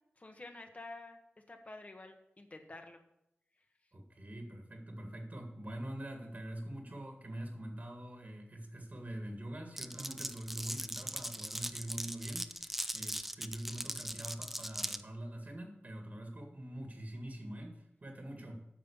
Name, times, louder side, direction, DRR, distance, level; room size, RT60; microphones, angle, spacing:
voice 1, 0.2-1.2 1.5-3.0, left 2 dB, 35° left, 5 dB, 1.4 m, -49 dB
voice 2, 3.9-18.6, right 1 dB, 40° right, 3 dB, 1.8 m, -44 dB
Glass, 9.8-15.0, equal, 5° right, 0.5 m, -40 dB
9.4 x 5.7 x 7.1 m, 0.82 s
wide cardioid pair, 90°, 4 cm